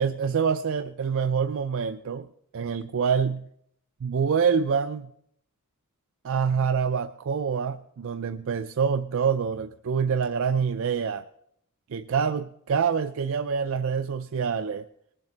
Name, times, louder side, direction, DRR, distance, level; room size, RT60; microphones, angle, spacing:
voice 1, 0.0-2.3 2.5-3.5 4.0-5.1 6.2-11.3 11.9-14.9, right 6 dB, 60° right, 9 dB, 0.4 m, -26 dB
20.0 x 7.6 x 3.9 m, 0.71 s
head